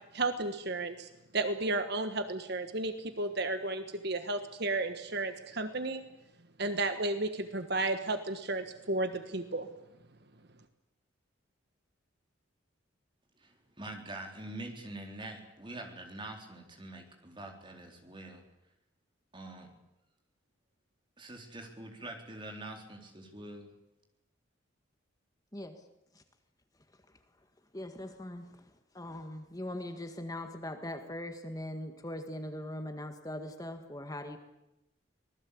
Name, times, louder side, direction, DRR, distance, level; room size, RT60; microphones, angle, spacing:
voice 1, 0.1-6.0 6.6-9.7, right 2 dB, 50° right, 9 dB, 1.4 m, -33 dB
voice 2, 13.4-18.4 19.3-19.7 21.2-23.7, right 2 dB, 25° right, 3 dB, 4.0 m, -45 dB
voice 3, 27.7-28.5 28.9-34.4, left 1 dB, 15° left, 6 dB, 1.7 m, -40 dB
25.5 x 19.5 x 8.6 m, 0.91 s
head